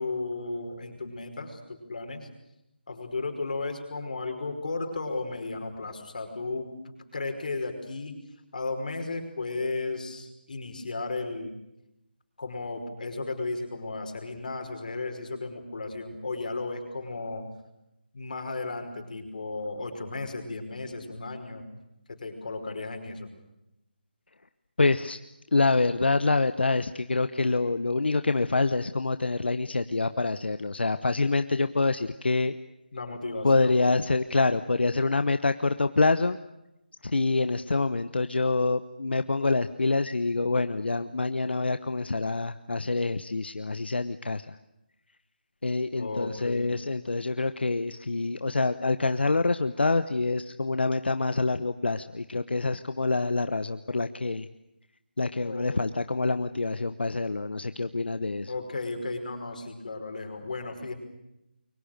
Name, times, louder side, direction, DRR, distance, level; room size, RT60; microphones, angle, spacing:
voice 1, 0.0-2.3 2.9-8.1 8.5-11.5 12.4-17.5 18.1-21.7 22.1-23.3 32.9-33.8 45.9-46.8 55.4-55.8 58.5-60.9, left 3 dB, 50° left, 5 dB, 5.5 m, -34 dB
voice 2, 24.8-25.2 25.5-32.5 33.4-36.4 37.0-44.6 45.6-54.5 55.2-58.5, left 3 dB, 80° left, 11 dB, 1.1 m, -26 dB
29.0 x 23.5 x 6.7 m, 0.87 s
figure-of-eight pair, 175°, 6 cm